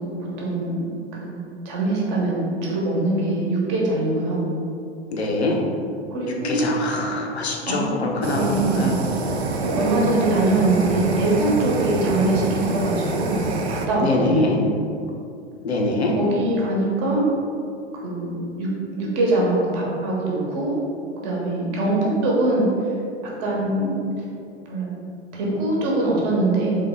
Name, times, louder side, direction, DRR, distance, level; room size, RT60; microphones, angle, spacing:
voice 1, 0.0-1.4 1.6-4.5 6.1-6.8 7.6-9.3 9.6-13.4 13.7-14.4 16.2-17.2 18.0-18.7 19.0-20.8 21.2-22.9 23.4-23.9 24.6-24.9 25.4-26.8, right 2 dB, 40° right, -3 dB, 1.1 m, -23 dB
voice 2, 5.1-5.6 6.4-9.0 14.0-14.6 15.6-16.1, left 2 dB, 75° left, -1 dB, 0.7 m, -24 dB
Fire, 8.2-13.9, right 3 dB, 75° right, 0.5 m, -26 dB
3.5 x 3.4 x 3.6 m, 2.5 s
figure-of-eight pair, 95°, 33 cm